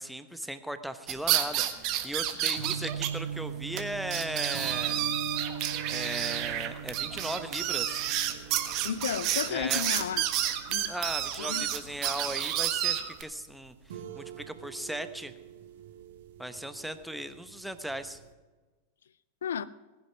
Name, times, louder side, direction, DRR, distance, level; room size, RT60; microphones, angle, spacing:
voice 1, 0.0-5.1 5.9-8.1 9.5-9.9 10.9-13.7 14.1-15.3 16.4-18.2, right 1 dB, ahead, 10 dB, 1.0 m, -37 dB
sound 1, 1.1-3.1 3.4-3.5 3.8-3.9 4.1-13.2, right 12 dB, 40° right, 1.4 m, -30 dB
sound 2, 2.6-18.3, right 7 dB, 55° right, 1.5 m, -42 dB
voice 2, 8.8-10.2 10.7-11.0 11.4-11.7 19.4-19.6, left 8 dB, 65° left, 17 dB, 0.4 m, -32 dB
18.5 x 10.5 x 6.0 m, 1.3 s
figure-of-eight pair, 90°, 0 cm